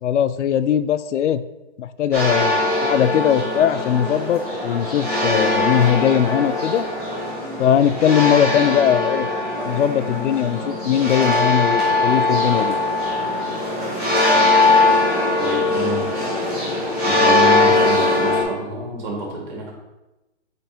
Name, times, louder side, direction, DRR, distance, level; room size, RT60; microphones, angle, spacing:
voice 1, 0.0-1.4 1.8-6.8 7.6-9.3 9.7-12.8, left 9 dB, 80° left, 14 dB, 0.5 m, -20 dB
sound 1, 2.1-18.4, left 2 dB, 5° right, 0.5 m, -20 dB
voice 2, 15.4-16.1 17.0-19.7, right 2 dB, 40° right, -2 dB, 1.9 m, -28 dB
7.9 x 5.2 x 2.8 m, 1.0 s
hypercardioid pair, 165°, 35 cm